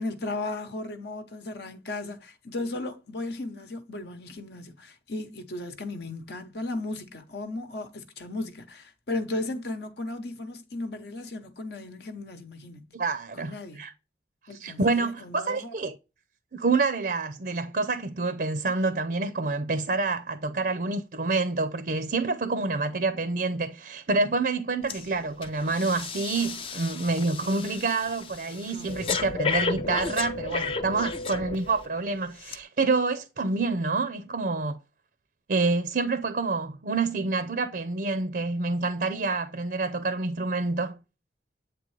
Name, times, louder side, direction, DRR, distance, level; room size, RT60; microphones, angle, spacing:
voice 1, 0.0-12.9 13.4-13.8 14.5-15.7 28.7-29.5, left 2 dB, 65° left, 0.9 m, -36 dB
voice 2, 12.9-13.9 14.6-16.0 16.5-34.8 35.5-41.0, right 3 dB, 55° right, 0.5 m, -27 dB
Breathing, 24.9-25.1 25.4-31.9 32.4-32.6, left 4 dB, 30° left, 0.5 m, -33 dB
7.9 x 3.7 x 3.2 m
head